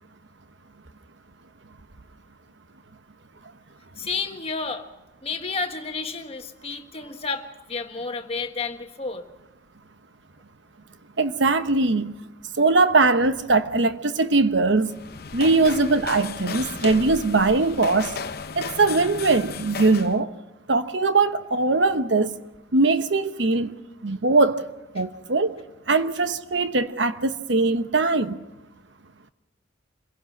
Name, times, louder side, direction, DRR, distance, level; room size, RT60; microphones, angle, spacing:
voice 1, 4.0-4.9 5.2-9.3, left 4 dB, 30° left, 1.5 m, -31 dB
voice 2, 11.2-12.1 12.6-14.9 15.3-18.1 18.6-20.3 20.7-22.3 22.7-23.7 24.0-24.6 24.9-25.5 25.9-28.4, right 3 dB, 70° right, 1.0 m, -21 dB
sound 1, 14.8-20.2, left 5 dB, 50° left, 0.7 m, -34 dB
26.5 x 17.0 x 6.1 m
head